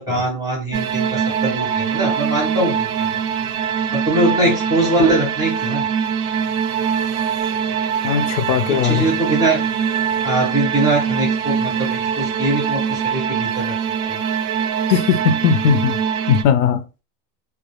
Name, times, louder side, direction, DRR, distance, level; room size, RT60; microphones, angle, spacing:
voice 1, 0.0-3.1 3.9-5.8 8.9-9.6 10.2-13.7 14.1-14.2, right 2 dB, 10° right, 0.5 m, -21 dB
sound 1, 0.7-16.4, right 7 dB, 65° right, 0.5 m, -22 dB
voice 2, 8.0-9.1 14.9-17.0, left 7 dB, 90° left, 0.6 m, -19 dB
2.1 x 2.1 x 2.9 m
supercardioid pair, 145°, 50 cm